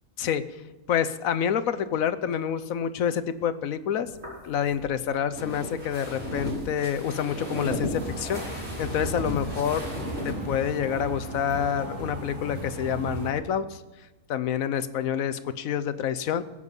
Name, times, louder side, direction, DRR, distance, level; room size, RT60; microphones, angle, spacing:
voice 1, 0.9-4.1 4.4-9.9 10.2-13.8 14.3-16.4, left 8 dB, 65° left, 12 dB, 1.1 m, -28 dB
sound 1, 4.1-10.4, equal, 45° right, 5.2 m, -35 dB
sound 2, 7.9-13.3, right 1 dB, 65° right, 4.9 m, -36 dB
21.5 x 8.4 x 5.4 m, 1.1 s
omnidirectional pair, 1.7 m